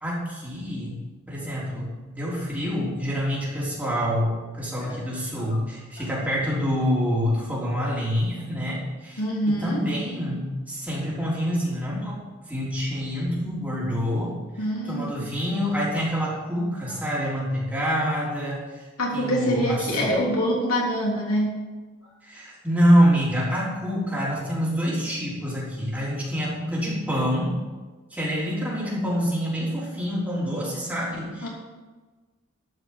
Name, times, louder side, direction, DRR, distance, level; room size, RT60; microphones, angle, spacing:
voice 1, 0.0-1.0 1.3-9.2 9.5-12.1 12.5-14.3 14.9-18.8 19.1-20.1 22.2-27.6 28.1-31.5, equal, 10° right, -6 dB, 3.6 m, -26 dB
voice 2, 9.2-9.9 14.6-15.3 19.0-21.5 31.4-31.5, equal, 90° left, -3 dB, 3.4 m, -25 dB
12.5 x 6.0 x 7.3 m, 1.3 s
head